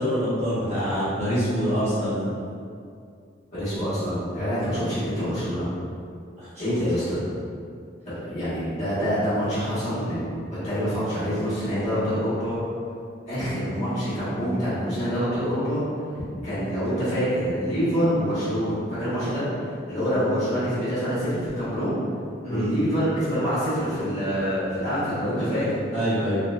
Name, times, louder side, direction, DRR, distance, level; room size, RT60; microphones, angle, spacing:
voice 1, 0.0-2.2 6.4-6.7 22.4-22.7 25.4-26.4, equal, 35° right, -13 dB, 1.3 m, -26 dB
voice 2, 3.5-5.6 6.6-7.3 8.3-10.4 10.6-12.6 13.3-15.8 16.4-19.4 19.9-21.9 22.5-25.6, equal, 35° left, -14 dB, 1.4 m, -26 dB
3.1 x 2.9 x 2.4 m, 2.3 s
head